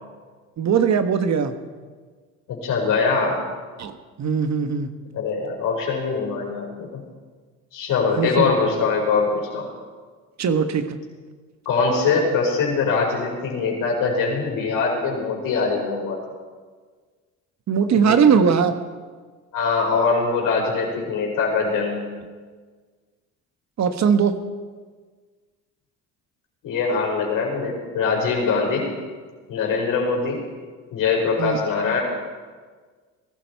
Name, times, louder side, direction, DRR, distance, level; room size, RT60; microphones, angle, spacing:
voice 1, 0.6-1.5 3.8-4.9 8.2-8.5 10.4-11.0 17.7-18.7 23.8-24.4 31.4-31.6, right 6 dB, 50° right, 9 dB, 1.3 m, -20 dB
voice 2, 2.5-3.4 5.1-7.0 7.7-9.7 11.7-16.2 17.9-18.2 19.5-22.1 26.6-28.9 29.5-30.4 30.9-32.0, left 4 dB, 70° left, -1 dB, 5.2 m, -22 dB
19.5 x 12.5 x 4.7 m, 1.5 s
supercardioid pair, 75°, 34 cm